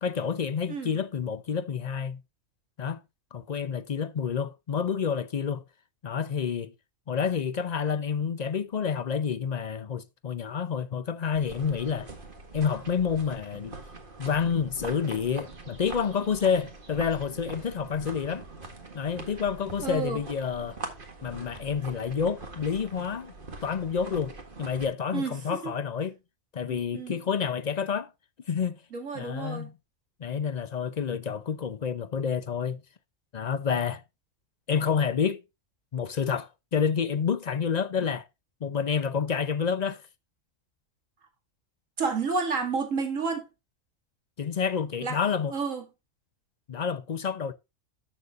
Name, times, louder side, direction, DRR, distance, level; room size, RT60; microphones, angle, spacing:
voice 1, 0.0-2.2 2.8-3.0 3.3-5.6 6.0-6.7 7.1-12.1 12.5-13.8 14.2-18.4 18.9-20.8 21.2-23.3 23.6-26.2 26.5-28.1 28.5-28.7 29.1-29.7 30.2-32.8 33.3-34.0 34.7-35.4 35.9-38.3 38.6-40.0 44.4-45.5 46.7-47.5, left 6 dB, 50° left, 0.5 m, -29 dB
sound 1, 11.3-24.9, right 3 dB, 40° right, 1.8 m, -43 dB
voice 2, 19.8-20.2 25.1-25.7 26.7-27.2 28.9-29.7 42.0-43.5 45.0-45.2 45.5-45.8, right 4 dB, 70° right, 2.6 m, -30 dB
13.0 x 6.8 x 2.5 m
omnidirectional pair, 1.4 m